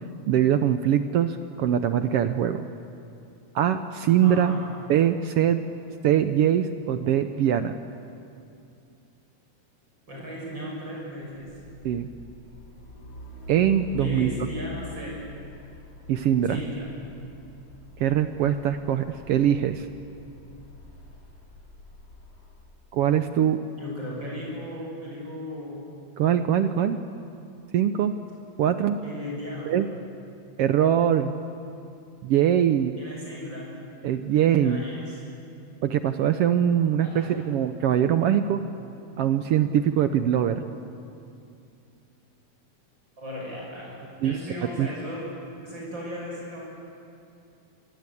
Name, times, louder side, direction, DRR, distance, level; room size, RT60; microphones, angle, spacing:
voice 1, 0.3-2.6 3.5-4.5 4.9-5.6 6.0-7.8 11.8-12.1 13.5-14.3 16.1-16.6 18.0-19.9 22.9-23.6 26.2-27.0 27.7-28.1 28.6-29.0 29.7-29.9 30.6-31.4 32.2-33.0 34.0-34.8 35.8-38.6 39.2-40.6 44.2-44.4 44.8-44.9, right 10 dB, 70° right, 9 dB, 1.4 m, -22 dB
voice 2, 4.2-4.6 10.1-11.5 13.9-15.2 16.4-16.9 23.8-25.9 29.0-29.7 33.0-33.7 34.6-35.2 37.0-37.3 43.2-43.9 44.2-45.3 45.6-46.7, equal, 35° right, -4 dB, 7.2 m, -36 dB
Truck, 11.4-22.6, left 2 dB, 70° left, 6.5 m, -45 dB
28.0 x 22.0 x 8.4 m, 2.6 s
omnidirectional pair, 3.4 m